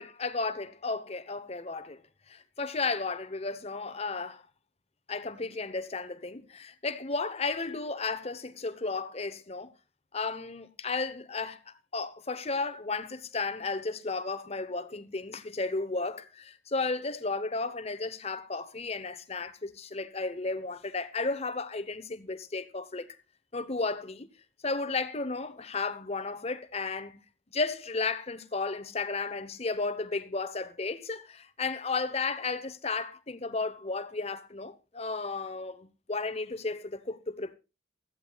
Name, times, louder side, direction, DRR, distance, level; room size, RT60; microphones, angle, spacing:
voice 1, 0.0-2.0 2.3-4.5 5.1-9.7 10.1-23.1 23.5-24.3 24.6-27.2 27.5-37.5, left 3 dB, 35° left, 1.0 m, -34 dB
16.5 x 14.0 x 2.4 m
head